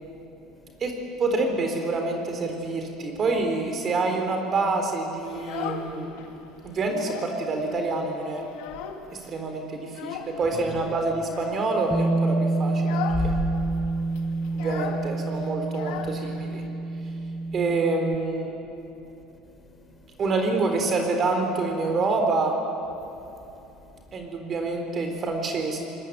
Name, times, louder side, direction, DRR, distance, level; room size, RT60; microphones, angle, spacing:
voice 1, 0.0-0.8 8.8-9.3 10.5-10.9 13.1-14.7 17.1-17.2 18.8-20.2 23.0-24.3, left 3 dB, 25° left, 2 dB, 5.3 m, -38 dB
voice 2, 1.2-6.2 6.6-8.4 9.2-13.0 13.2-13.4 14.5-16.6 17.5-18.5 20.2-22.6 24.1-25.8, right 3 dB, 35° right, 4 dB, 3.9 m, -27 dB
Child speech kid speaking, 5.2-6.3 6.6-7.4 7.7-7.8 8.1-9.2 9.9-10.4 11.2-11.7 12.2-12.4 12.7-13.3 13.5-13.6 13.9-16.7, left 8 dB, 80° left, 2.3 m, -37 dB
Bass guitar, 11.9-18.2, right 3 dB, 10° right, 0.6 m, -27 dB
24.5 x 21.0 x 9.4 m, 3.0 s
supercardioid pair, 110°, 0 cm